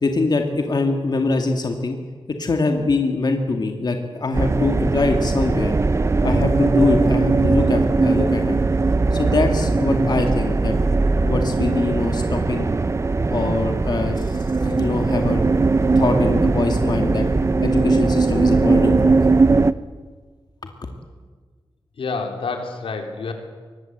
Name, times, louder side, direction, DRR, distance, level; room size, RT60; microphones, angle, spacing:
voice 1, 0.0-2.0 2.4-5.7 6.2-8.6 9.1-10.8 11.1-12.7 13.3-15.4 16.0-17.3 17.6-19.3, left 3 dB, 50° left, 4 dB, 2.3 m, -23 dB
sound 1, 4.3-19.7, right 3 dB, 30° right, 0.7 m, -19 dB
voice 2, 22.0-23.3, left 4 dB, 90° left, 4 dB, 3.5 m, -28 dB
23.5 x 20.5 x 8.1 m, 1.5 s
wide cardioid pair, 110°, 9 cm